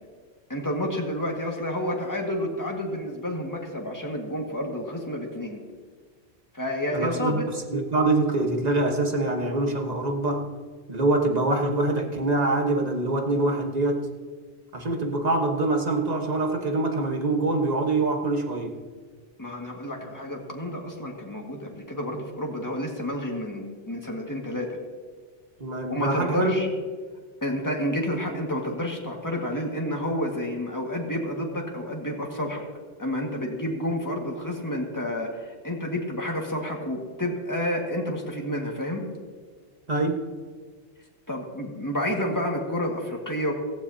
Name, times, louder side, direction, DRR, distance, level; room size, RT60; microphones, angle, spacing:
voice 1, 0.5-5.6 6.5-7.5 19.4-24.7 25.9-26.7 27.4-32.6 33.0-39.0 41.3-43.5, left 1 dB, 15° left, 0 dB, 1.8 m, -30 dB
voice 2, 6.9-10.5 10.9-14.1 14.7-18.8 25.6-26.5 39.9-40.2, right 2 dB, 35° right, 3 dB, 1.4 m, -24 dB
17.5 x 15.0 x 2.8 m, 1.5 s
omnidirectional pair, 1.2 m